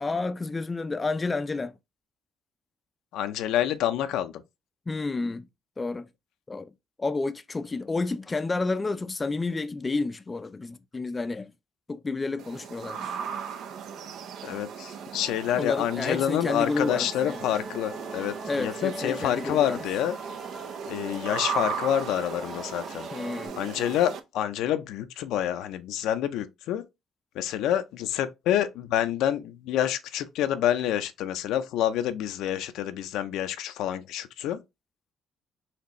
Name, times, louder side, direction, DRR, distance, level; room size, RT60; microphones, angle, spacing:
voice 1, 0.0-1.8 4.9-5.5 5.8-6.1 6.5-6.7 7.0-11.5 11.9-13.2 15.6-17.4 18.5-19.8 23.1-23.6, left 3 dB, 25° left, 0.4 m, -30 dB
voice 2, 3.1-4.4 14.4-20.2 20.9-23.1 23.6-26.9 27.3-34.6, left 11 dB, 85° left, 0.5 m, -28 dB
sound 1, 12.4-24.2, right 7 dB, 70° right, 0.6 m, -37 dB
sound 2, 15.1-23.5, right 1 dB, 15° right, 1.0 m, -43 dB
4.3 x 2.9 x 3.0 m
cardioid pair, 90°, 0 cm